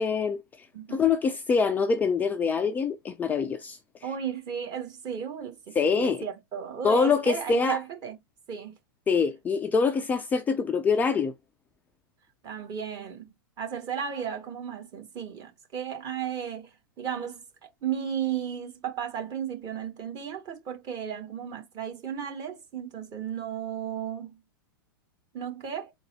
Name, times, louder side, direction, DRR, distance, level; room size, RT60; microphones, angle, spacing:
voice 1, 0.0-3.8 5.8-6.2 6.8-7.8 9.1-11.3, left 5 dB, 15° left, 0.4 m, -25 dB
voice 2, 0.7-1.1 4.0-8.2 8.5-8.7 12.4-13.3 13.6-16.7 17.0-17.4 17.8-24.3 25.3-25.9, right 8 dB, 30° right, 1.5 m, -34 dB
3.9 x 2.3 x 4.1 m
figure-of-eight pair, 100°, 12 cm